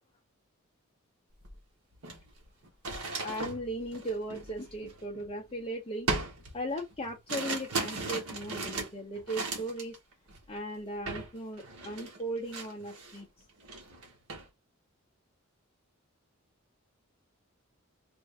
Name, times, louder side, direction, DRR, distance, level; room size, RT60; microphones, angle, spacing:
sound 1, 1.4-1.5 1.9-5.5 6.1-10.0 10.3-10.6 11.1-11.3 11.6-13.2 13.6-14.5, right 3 dB, 90° right, 1.3 m, -37 dB
voice 1, 3.2-6.1 6.5-10.0 10.5-13.3, right 1 dB, 25° left, 0.6 m, -37 dB
3.5 x 2.5 x 3.3 m
head